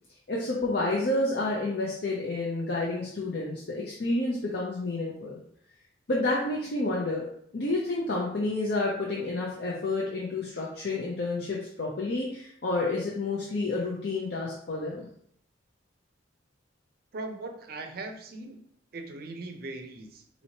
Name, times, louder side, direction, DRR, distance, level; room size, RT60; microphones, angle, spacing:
voice 1, 0.3-5.4 6.1-7.3 7.5-15.1, left 2 dB, 60° left, -3 dB, 0.6 m, -29 dB
voice 2, 17.1-18.6 18.9-20.4, right 2 dB, 50° right, 6 dB, 0.5 m, -40 dB
4.2 x 2.9 x 2.8 m, 0.66 s
head